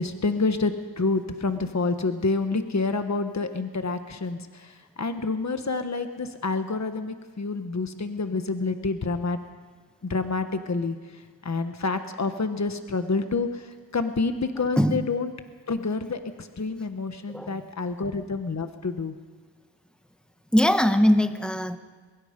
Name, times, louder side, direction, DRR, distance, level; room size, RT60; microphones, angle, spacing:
voice 1, 0.0-9.4 10.0-10.9 11.4-15.3 15.7-19.1, left 3 dB, 40° left, 8 dB, 1.3 m, -28 dB
voice 2, 17.3-17.6 20.5-21.8, equal, ahead, 8 dB, 1.3 m, -21 dB
23.0 x 22.0 x 5.2 m, 1.5 s
wide cardioid pair, 80°, 43 cm